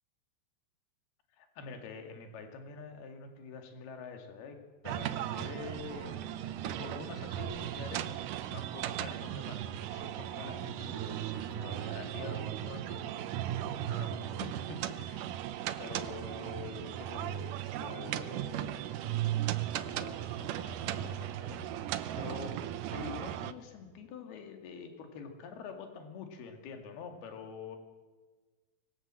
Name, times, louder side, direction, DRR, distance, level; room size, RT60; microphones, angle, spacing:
voice 1, 1.4-4.6 4.8-13.1 13.7-15.5 15.8-18.9 20.0-22.6 22.9-27.8, left 5 dB, 65° left, 5 dB, 4.2 m, -46 dB
sound 1, 4.8-23.5, right 12 dB, 80° right, 1.8 m, -37 dB
25.0 x 21.0 x 7.7 m, 1.3 s
omnidirectional pair, 4.9 m